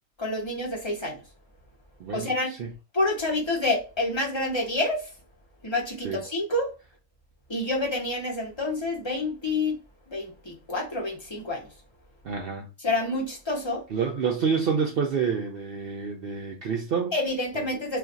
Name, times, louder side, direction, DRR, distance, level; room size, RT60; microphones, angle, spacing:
voice 1, 0.2-1.2 2.1-2.5 2.9-5.1 5.6-6.7 7.5-9.8 10.1-11.7 12.8-13.8 17.1-18.0, left 2 dB, 30° left, 0.6 m, -28 dB
voice 2, 2.0-2.3 2.6-2.7 6.0-6.2 12.2-12.7 13.9-17.1 17.5-17.6, right 6 dB, 70° right, 0.5 m, -28 dB
2.5 x 2.3 x 3.9 m
omnidirectional pair, 1.5 m